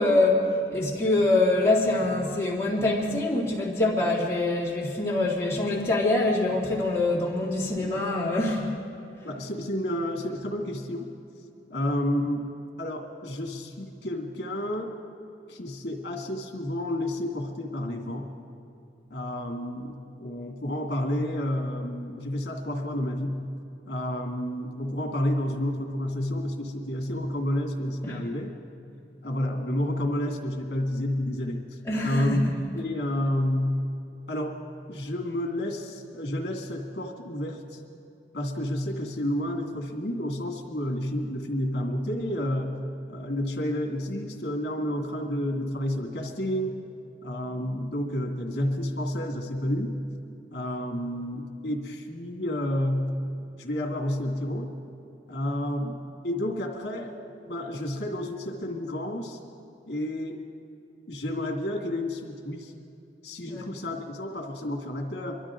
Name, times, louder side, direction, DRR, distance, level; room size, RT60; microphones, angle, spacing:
voice 1, 0.0-8.7 28.0-28.2 31.9-32.5 63.5-63.7, left 2 dB, 15° left, -6 dB, 2.5 m, -25 dB
voice 2, 9.2-11.1 11.7-12.5 12.8-15.0 15.5-18.3 19.1-23.5 23.9-28.5 29.2-31.8 32.0-32.4 32.7-33.9 34.3-34.6 34.9-37.8 38.3-42.8 43.1-46.8 47.2-50.0 50.5-53.2 53.6-54.7 55.3-57.1 57.5-59.4 59.9-60.4 61.1-62.7 63.2-65.4, left 1 dB, 65° left, 0 dB, 2.2 m, -30 dB
24.5 x 12.5 x 3.8 m, 2.6 s
head